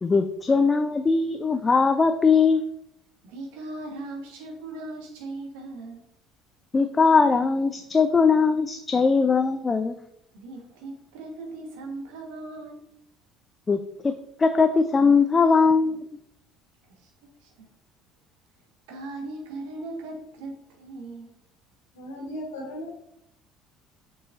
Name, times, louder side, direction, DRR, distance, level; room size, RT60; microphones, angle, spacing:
voice 1, 0.0-2.6 6.7-10.0 13.7-14.1 14.4-16.1, left 4 dB, 25° left, 8 dB, 0.4 m, -20 dB
voice 2, 3.2-6.0 10.3-12.8 16.9-17.1 17.4-17.7 18.9-21.3, right 2 dB, 65° right, 1 dB, 1.5 m, -38 dB
voice 3, 21.9-23.0, left 1 dB, 75° left, -3 dB, 1.7 m, -36 dB
6.7 x 5.5 x 2.6 m, 0.78 s
figure-of-eight pair, 60°, 0 cm